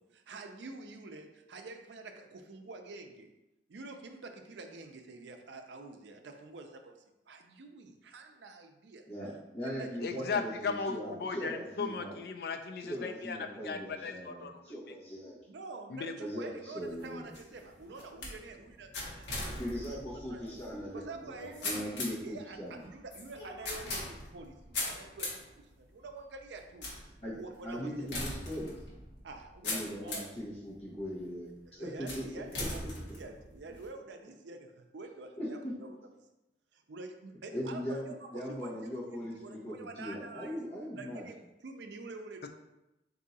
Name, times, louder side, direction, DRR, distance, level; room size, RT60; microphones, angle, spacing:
voice 1, 0.0-3.3 3.7-7.0 7.3-9.1 9.6-9.9 10.2-10.3 15.5-20.0 20.3-20.6 20.9-28.1 29.2-30.3 31.7-35.9 36.7-40.6 41.0-42.5, right 3 dB, 80° right, 5 dB, 0.5 m, -48 dB
voice 2, 9.1-12.2 12.8-15.4 16.2-17.3 19.4-22.8 27.2-28.7 29.6-32.4 35.4-35.7 37.5-41.3, equal, 35° left, -8 dB, 1.1 m, -40 dB
voice 3, 10.0-13.4 13.6-14.6 14.9-15.0 15.9-16.1, left 5 dB, 60° left, 7 dB, 0.3 m, -36 dB
sound 1, 16.8-30.4 31.0-31.4 32.1-33.9, left 2 dB, 80° left, 1.1 m, -41 dB
3.6 x 2.7 x 4.0 m, 0.95 s
head